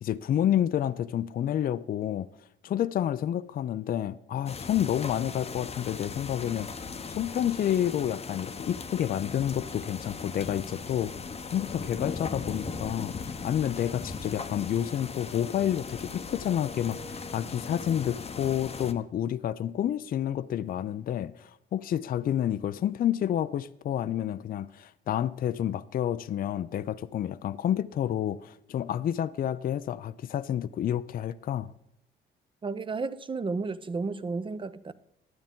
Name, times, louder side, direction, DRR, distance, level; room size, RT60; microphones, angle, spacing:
voice 1, 0.0-2.3 2.6-11.1 11.5-31.7, left 10 dB, 45° left, 0.4 m, -29 dB
sound 1, 4.5-18.9, left 5 dB, 30° left, 0.8 m, -38 dB
voice 2, 32.6-34.9, right 4 dB, 25° right, 0.6 m, -32 dB
12.0 x 8.8 x 3.7 m
cardioid pair, 90°, 20 cm